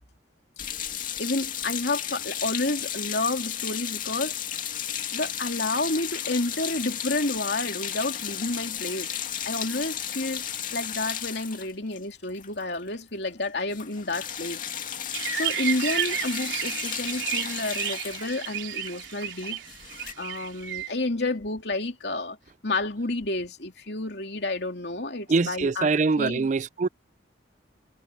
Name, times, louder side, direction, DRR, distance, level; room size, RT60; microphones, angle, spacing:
sound 1, 0.6-13.0 13.2-13.4 13.7-20.1, left 9 dB, 45° left, 2.5 m, -34 dB
voice 1, 1.2-4.3 5.1-9.1 9.4-10.5 10.7-14.6 15.3-19.6 20.2-22.4 22.6-26.5, left 2 dB, 60° left, 3.1 m, -30 dB
sound 2, 15.1-20.9, right 9 dB, 90° right, 3.9 m, -32 dB
voice 2, 25.3-26.9, right 4 dB, 40° right, 0.4 m, -23 dB
head